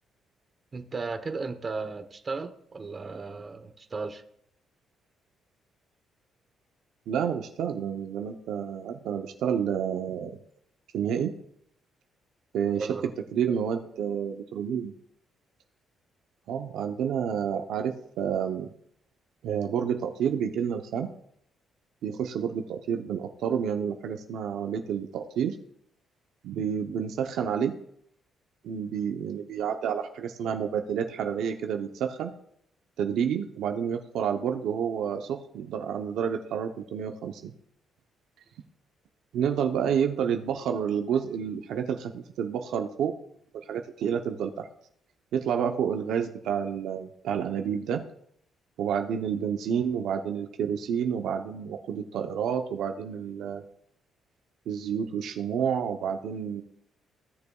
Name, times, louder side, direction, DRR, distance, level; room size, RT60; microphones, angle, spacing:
voice 1, 0.7-4.2 12.7-13.1, right 4 dB, 35° right, 7 dB, 1.0 m, -35 dB
voice 2, 7.1-10.4 10.9-11.3 12.5-12.9 13.3-14.9 16.5-18.7 19.4-21.1 22.0-25.6 26.4-27.7 28.6-32.3 33.0-37.5 39.3-43.1 43.5-44.7 45.3-48.0 48.8-53.6 54.7-56.6, right 8 dB, 80° right, 5 dB, 0.8 m, -29 dB
16.0 x 6.7 x 2.4 m, 0.68 s
cardioid pair, 90°, 0 cm